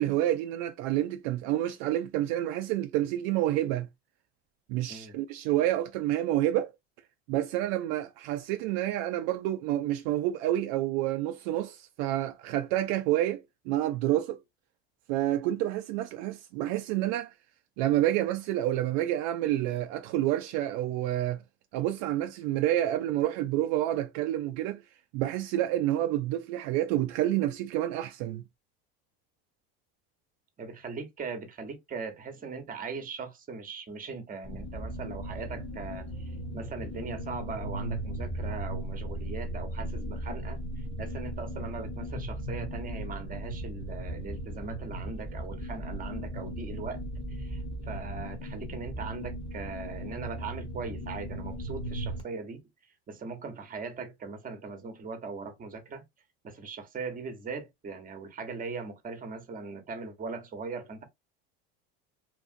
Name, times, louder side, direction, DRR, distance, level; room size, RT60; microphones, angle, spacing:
voice 1, 0.0-3.9 4.7-6.7 7.3-14.4 15.1-17.3 17.8-21.4 21.7-24.8 25.1-28.4, right 13 dB, 70° right, 0.5 m, -28 dB
voice 2, 30.6-47.0 47.3-56.0 56.4-61.0, right 4 dB, 30° right, 1.1 m, -40 dB
sound 1, 34.4-52.2, right 1 dB, 20° left, 1.2 m, -37 dB
2.9 x 2.5 x 2.5 m
supercardioid pair, 115°, 30 cm